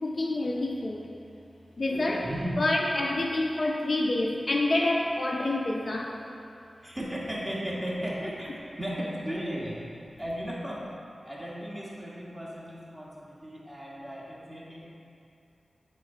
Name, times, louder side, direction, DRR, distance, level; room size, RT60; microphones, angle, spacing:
voice 1, 0.0-1.1 1.8-2.3 2.6-6.2, left 2 dB, 50° left, -1 dB, 0.6 m, -27 dB
voice 2, 1.9-2.6 6.8-8.5 8.8-9.9 10.2-10.9 11.2-14.9, equal, 15° right, -6 dB, 1.5 m, -35 dB
8.2 x 3.7 x 4.4 m, 2.7 s
wide cardioid pair, 85°, 0 cm